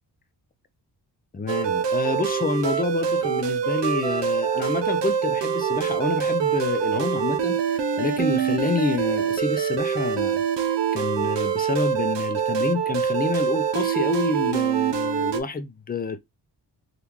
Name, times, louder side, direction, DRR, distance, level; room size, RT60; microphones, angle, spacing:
voice 1, 1.3-16.2, left 4 dB, 20° left, 0.5 m, -28 dB
sound 1, 1.5-15.4, right 7 dB, 70° right, 0.7 m, -24 dB
3.5 x 2.5 x 2.9 m
cardioid pair, 100°, 45 cm